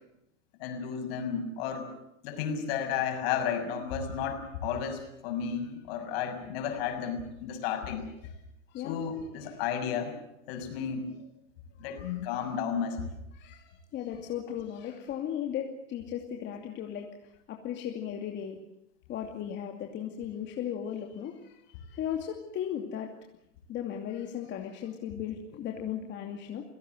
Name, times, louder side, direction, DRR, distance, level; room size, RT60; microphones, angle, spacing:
voice 1, 0.6-1.9 2.2-8.0 8.8-10.2 10.5-11.2 11.8-13.1, left 7 dB, 55° left, 7 dB, 6.4 m, -33 dB
voice 2, 8.7-9.0 9.4-9.6 11.8-12.5 13.3-18.6 19.1-23.1 23.7-26.6, left 9 dB, 30° left, 2 dB, 2.6 m, -37 dB
29.0 x 17.0 x 7.9 m, 0.81 s
supercardioid pair, 140°, 36 cm